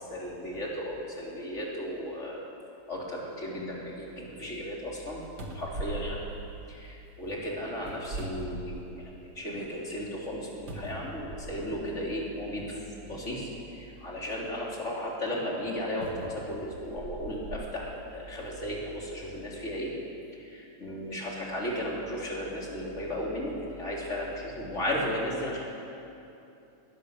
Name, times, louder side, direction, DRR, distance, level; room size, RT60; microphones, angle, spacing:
voice 1, 0.1-2.4 2.9-5.2 5.5-6.2 6.7-19.9 20.4-25.6, equal, 20° left, -3 dB, 3.8 m, -35 dB
sound 1, 5.0-5.1 5.4-7.1 7.8-9.2 9.6-9.7 10.7-11.8 12.7-12.8 16.0-17.7 18.4-18.5, right 2 dB, 35° right, 2.2 m, -40 dB
21.0 x 19.5 x 6.7 m, 2.8 s
omnidirectional pair, 3.6 m